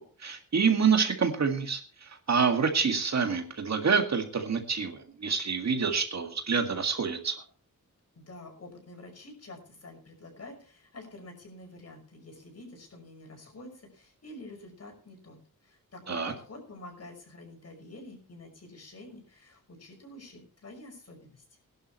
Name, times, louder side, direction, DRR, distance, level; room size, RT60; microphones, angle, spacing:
voice 1, 0.2-7.4 16.1-16.3, right 5 dB, 55° right, 5 dB, 2.0 m, -27 dB
voice 2, 8.1-21.4, left 2 dB, 50° left, 2 dB, 5.9 m, -48 dB
21.5 x 11.5 x 3.1 m, 0.38 s
wide cardioid pair, 150°, 33 cm